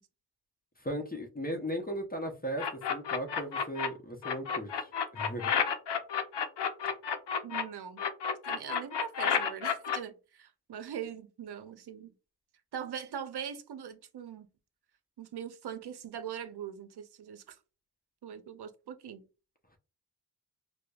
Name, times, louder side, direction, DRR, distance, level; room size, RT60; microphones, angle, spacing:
voice 1, 0.8-5.5, equal, 20° left, 0.7 m, -37 dB
sound 1, 2.6-3.9 4.2-7.6 8.0-10.0, left 7 dB, 90° left, 0.6 m, -30 dB
voice 2, 7.4-8.0 8.4-12.1 12.7-14.5 15.2-17.6 18.2-19.2, right 8 dB, 70° right, 0.6 m, -41 dB
5.0 x 2.0 x 2.3 m
wide cardioid pair, 65°, 40 cm